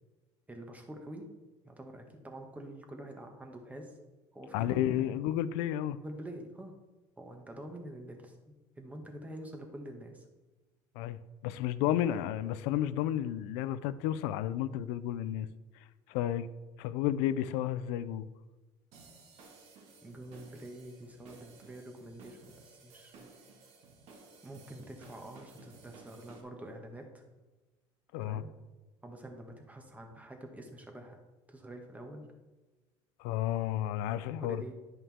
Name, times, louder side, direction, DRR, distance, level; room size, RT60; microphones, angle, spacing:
voice 1, 0.5-1.3 1.6-4.0 4.3-5.2 5.9-6.7 7.2-10.3 12.1-12.3 20.0-23.3 24.4-27.2 28.3-28.5 29.0-31.2 31.5-32.2 34.4-34.7, right 1 dB, 15° right, 3 dB, 1.6 m, -46 dB
voice 2, 4.5-6.0 11.0-15.5 16.1-16.5 16.8-18.3 28.1-28.4 33.2-34.6, left 12 dB, 80° left, 15 dB, 0.5 m, -32 dB
sound 1, 18.9-26.4, right 4 dB, 65° right, 1.8 m, -56 dB
10.5 x 5.6 x 3.6 m, 1.2 s
supercardioid pair, 95°, 12 cm